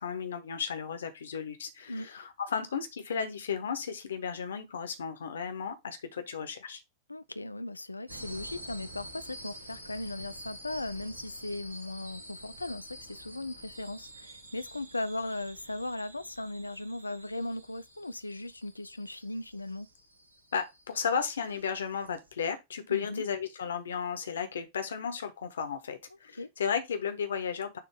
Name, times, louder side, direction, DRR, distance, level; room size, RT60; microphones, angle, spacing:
voice 1, 0.0-6.8 20.5-27.8, left 6 dB, 65° left, 1.1 m, -34 dB
voice 2, 7.1-19.9 22.9-23.2 26.4-26.5, left 2 dB, 85° left, 0.4 m, -38 dB
sound 1, 8.1-22.3, right 1 dB, 80° right, 1.7 m, -48 dB
6.8 x 3.0 x 4.8 m
figure-of-eight pair, 90°, 0 cm